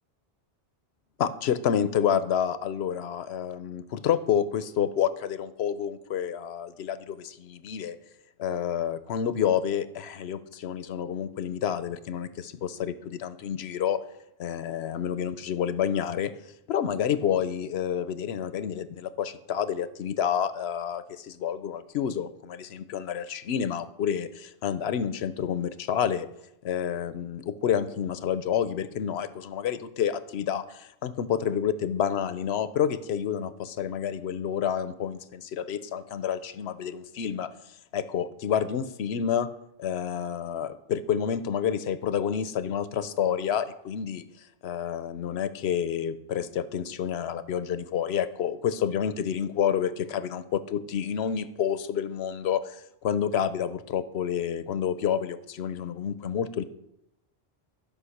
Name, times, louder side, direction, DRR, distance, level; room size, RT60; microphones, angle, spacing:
voice 1, 1.2-8.0 8.4-14.0 14.4-16.3 16.7-26.3 26.6-37.5 37.9-39.5 39.8-44.2 44.6-56.6, left 8 dB, 90° left, 14 dB, 0.9 m, -29 dB
12.5 x 5.3 x 6.5 m, 0.83 s
omnidirectional pair, 1.0 m